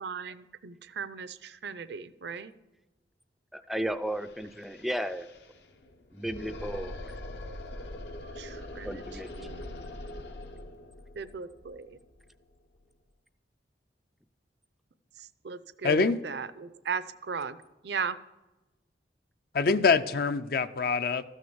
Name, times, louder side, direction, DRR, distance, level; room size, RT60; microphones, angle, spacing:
voice 1, 0.0-2.5 8.4-9.0 9.4-9.8 11.2-12.0 15.2-17.6 17.8-18.2, right 6 dB, 70° right, 14 dB, 0.5 m, -37 dB
voice 2, 3.5-5.3 6.1-6.9 8.8-9.3, equal, ahead, 10 dB, 0.3 m, -34 dB
sound 1, 3.9-4.0 4.2-13.0, left 1 dB, 75° left, 1.1 m, -43 dB
voice 3, 15.8-16.2 19.5-21.2, left 4 dB, 55° left, 12 dB, 0.5 m, -25 dB
13.5 x 6.4 x 7.0 m, 1.1 s
head